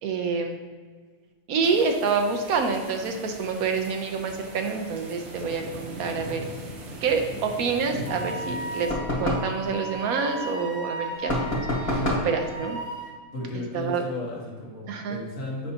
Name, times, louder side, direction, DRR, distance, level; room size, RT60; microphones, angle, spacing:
voice 1, 0.0-0.5 1.5-6.5 7.0-11.5 11.8-12.8 13.7-14.0 14.9-15.2, right 5 dB, 85° right, 4 dB, 1.2 m, -27 dB
sound 1, 1.6-8.9, right 1 dB, 60° right, 1.2 m, -40 dB
Wind instrument woodwind instrument, 8.0-13.2, right 2 dB, 40° left, 1.2 m, -36 dB
sound 2, 8.9-9.6 11.3-12.3, left 1 dB, 25° left, 1.5 m, -26 dB
voice 2, 11.8-12.3 13.3-15.7, left 1 dB, 65° left, -3 dB, 1.8 m, -34 dB
7.8 x 5.5 x 2.8 m, 1.6 s
omnidirectional pair, 1.5 m